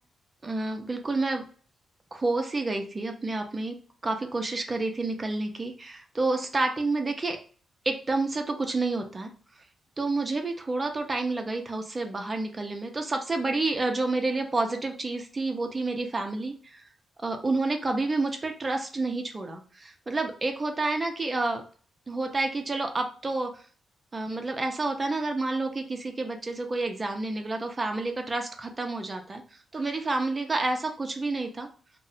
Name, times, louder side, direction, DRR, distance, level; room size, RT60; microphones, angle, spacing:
voice 1, 0.4-1.4 2.1-3.7 4.0-7.4 7.8-9.3 10.0-16.8 17.2-21.6 22.1-23.6 24.1-29.4 29.7-31.7, right 2 dB, 25° right, 4 dB, 0.5 m, -29 dB
2.6 x 2.1 x 3.9 m, 0.42 s
cardioid pair, 125°, 0 cm